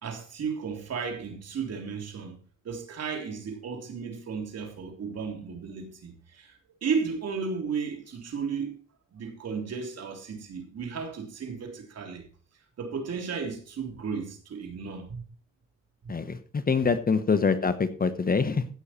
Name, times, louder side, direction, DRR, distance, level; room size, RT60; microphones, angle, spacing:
voice 1, 0.0-2.4 2.6-8.7 9.1-12.2 12.8-15.2 16.0-16.1, right 5 dB, 55° right, 3.4 m, -34 dB
voice 2, 16.1-18.7, left 5 dB, 30° left, 1.2 m, -25 dB
16.0 x 6.6 x 4.4 m
cardioid pair, 90°, 30 cm